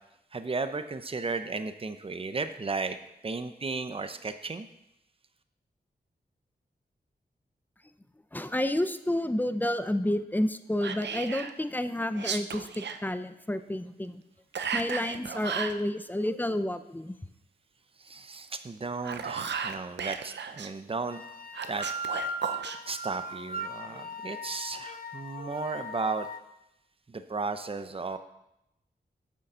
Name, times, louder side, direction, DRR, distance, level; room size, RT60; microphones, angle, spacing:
voice 1, 0.3-3.0 3.2-4.7 18.0-21.2 21.7-21.9 22.9-26.3 27.1-28.2, right 4 dB, 30° right, 9 dB, 0.6 m, -34 dB
voice 2, 8.3-14.2 14.7-17.1, left 1 dB, 10° left, 11 dB, 0.5 m, -30 dB
Whispering, 10.8-11.5 12.1-13.0 14.5-15.8 18.8-20.7 21.5-22.8, right 6 dB, 85° right, 0.6 m, -34 dB
sound 1, 21.1-26.4, right 1 dB, 55° left, 0.7 m, -38 dB
8.4 x 6.4 x 5.6 m, 0.86 s
wide cardioid pair, 75°, 18 cm